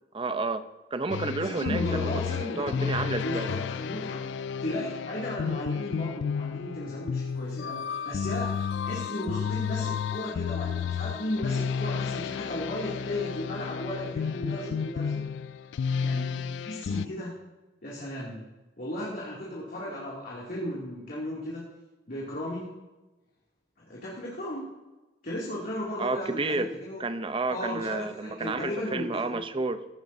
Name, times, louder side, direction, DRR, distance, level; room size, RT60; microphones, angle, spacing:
voice 1, 0.1-3.5 26.0-26.7 27.0-29.9, right 3 dB, 30° right, 11 dB, 0.6 m, -31 dB
sound 1, 1.1-17.1, left 6 dB, 75° left, 0.3 m, -32 dB
voice 2, 1.4-2.9 3.2-4.3 4.6-15.2 16.0-17.4 17.8-18.4 18.8-21.7 22.1-22.7 23.8-24.7 25.2-27.0 27.5-29.4, left 1 dB, 55° left, -6 dB, 2.6 m, -35 dB
16.0 x 11.5 x 2.7 m, 1.1 s
head